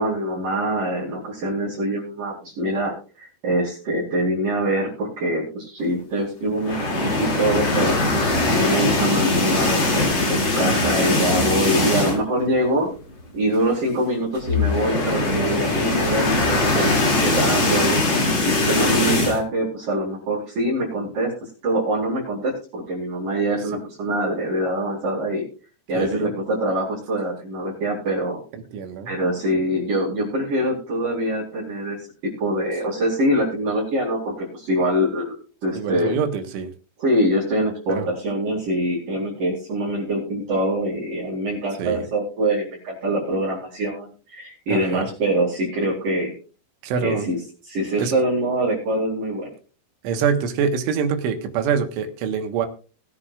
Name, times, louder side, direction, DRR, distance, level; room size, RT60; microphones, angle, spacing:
voice 1, 0.0-8.0 8.5-12.9 13.3-17.0 17.4-18.0 18.5-21.3 21.6-25.4 25.9-28.4 29.1-32.0 32.4-36.1 37.0-46.3 47.0-47.4 47.7-49.5, right 1 dB, 45° right, -7 dB, 5.5 m, -24 dB
sound 1, 6.6-12.4 12.8-12.9 13.2-13.3 14.3-19.4, left 2 dB, 30° left, 2.5 m, -21 dB
voice 2, 10.7-11.3 16.6-17.6 25.9-26.3 28.5-29.2 35.7-36.7 37.9-38.1 41.8-42.1 44.7-45.1 46.8-47.3 48.0-48.1 50.0-52.7, right 6 dB, 75° right, 6 dB, 3.8 m, -26 dB
21.5 x 9.6 x 2.5 m, 0.36 s
omnidirectional pair, 5.8 m